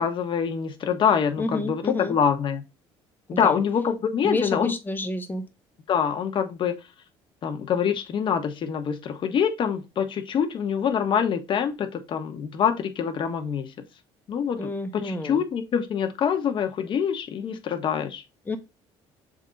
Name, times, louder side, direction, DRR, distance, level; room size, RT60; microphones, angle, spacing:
voice 1, 0.0-2.6 3.3-4.7 5.9-6.8 7.4-13.7 14.3-18.2, left 7 dB, 50° left, 1.2 m, -25 dB
voice 2, 1.4-2.1 3.3-3.6 4.2-5.4 14.6-15.4 18.5-18.6, left 2 dB, 20° left, 1.3 m, -29 dB
7.1 x 3.8 x 4.0 m
cardioid pair, 100°, 11 cm